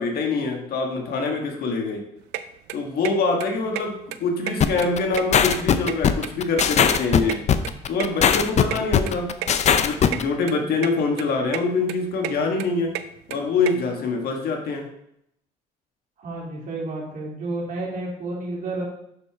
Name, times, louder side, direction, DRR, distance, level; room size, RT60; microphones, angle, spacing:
voice 1, 0.0-2.0 2.7-7.4 7.9-9.3 9.8-12.9 13.3-14.9, left 3 dB, 65° left, 2 dB, 1.5 m, -25 dB
sound 1, 2.3-2.4 2.7-3.1 3.4-3.5 3.8-3.9 4.1-4.9 5.1-6.3 6.6-8.1 8.4-8.5 8.7-8.8 9.1-9.2 9.4-9.5 9.8-10.2 10.5-10.9 11.2-11.6 11.9-13.7, right 13 dB, 90° right, 0.5 m, -31 dB
sound 2, 4.6-10.2, left 8 dB, 40° left, 0.5 m, -19 dB
voice 2, 16.2-18.8, right 2 dB, 50° right, -3 dB, 2.9 m, -31 dB
6.6 x 6.6 x 3.5 m, 0.75 s
cardioid pair, 110°, 17 cm